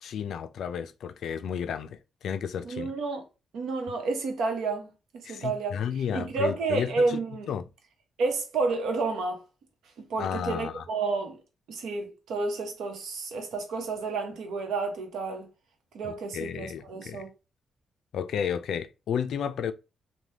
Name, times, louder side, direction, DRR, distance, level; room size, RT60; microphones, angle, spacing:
voice 1, 0.0-2.9 5.2-7.2 7.5-7.7 10.2-10.8 16.0-17.2 18.1-19.7, left 8 dB, 75° left, 0.3 m, -32 dB
voice 2, 2.6-3.2 3.5-4.9 5.3-5.8 6.1-7.5 8.2-9.4 10.0-11.4 11.7-15.5 15.9-17.3, right 3 dB, 85° right, 0.8 m, -30 dB
3.3 x 2.2 x 2.7 m
cardioid pair, 110°, 0 cm